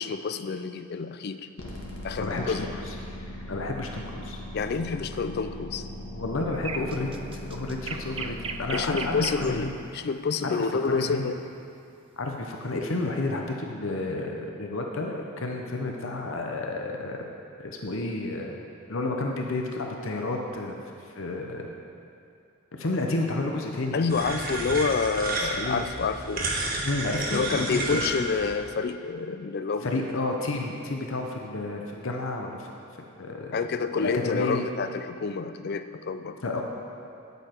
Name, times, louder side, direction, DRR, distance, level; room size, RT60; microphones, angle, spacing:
voice 1, 0.0-1.5 2.0-2.7 4.5-5.9 8.7-11.4 23.9-26.6 27.3-30.1 33.5-36.4, left 4 dB, 50° left, 10 dB, 0.4 m, -28 dB
sound 1, 1.6-9.6, left 1 dB, 90° left, 1.4 m, -39 dB
voice 2, 2.1-2.9 3.5-4.4 6.1-9.7 10.4-11.3 12.2-17.2 17.6-18.6 18.9-20.8 21.1-21.7 22.7-24.0 25.4-25.8 26.8-28.0 29.8-32.7 33.2-33.6 34.0-34.6 36.4-36.6, left 2 dB, 65° left, 1 dB, 0.8 m, -31 dB
sound 2, 6.5-9.5 11.6-11.8, right 5 dB, 25° right, 0.3 m, -36 dB
sound 3, 24.1-28.6, right 2 dB, 45° right, 1.2 m, -31 dB
9.7 x 8.0 x 4.5 m, 2.5 s
head